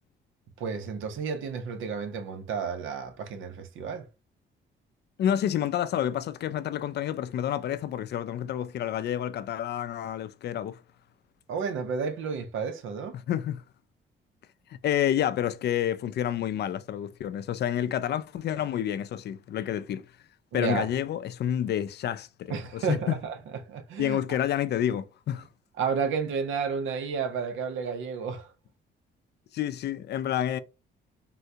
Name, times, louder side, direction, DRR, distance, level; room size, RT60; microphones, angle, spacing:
voice 1, 0.6-4.1 11.5-13.2 20.5-20.9 22.5-23.3 23.7-24.2 25.8-28.5, right 6 dB, 80° right, 0.7 m, -31 dB
voice 2, 5.2-10.8 13.1-13.6 14.8-20.1 20.5-23.2 24.0-25.5 29.5-30.6, left 10 dB, 60° left, 0.4 m, -29 dB
3.7 x 2.2 x 2.7 m
cardioid pair, 90°, 20 cm